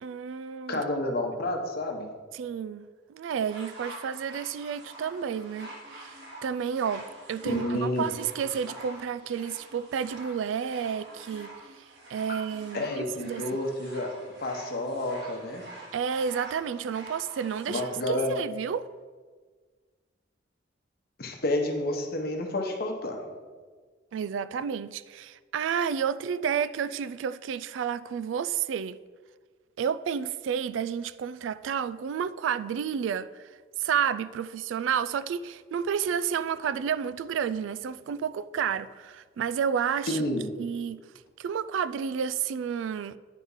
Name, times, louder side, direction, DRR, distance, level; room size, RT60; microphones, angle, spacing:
voice 1, 0.0-0.8 2.3-11.8 12.1-12.9 13.2-13.4 15.9-18.9 24.1-29.0 29.8-33.5 33.8-40.3 40.6-41.0 41.4-43.2, right 7 dB, 80° right, 0.3 m, -31 dB
voice 2, 0.7-2.1 7.4-8.1 12.7-14.1 14.4-15.6 17.7-18.4 21.2-23.2 40.1-40.5, left 1 dB, 55° left, 1.0 m, -30 dB
sound 1, 3.4-18.0 18.8-18.9, right 1 dB, 65° right, 1.7 m, -46 dB
9.2 x 3.6 x 5.5 m
head